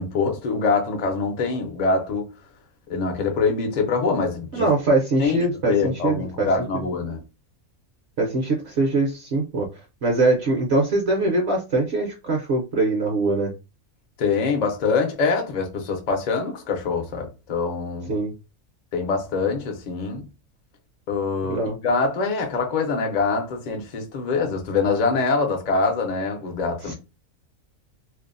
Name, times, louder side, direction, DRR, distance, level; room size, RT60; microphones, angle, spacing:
voice 1, 0.0-2.2 2.9-4.7 5.2-5.4 5.7-7.2 14.2-18.1 18.9-20.3 21.1-26.9, left 4 dB, 55° left, 0.4 m, -24 dB
voice 2, 4.5-6.8 8.2-9.7 10.0-13.5 18.1-18.3 21.5-21.8 26.8-26.9, right 2 dB, 60° right, 0.8 m, -22 dB
2.6 x 2.0 x 2.5 m
omnidirectional pair, 1.5 m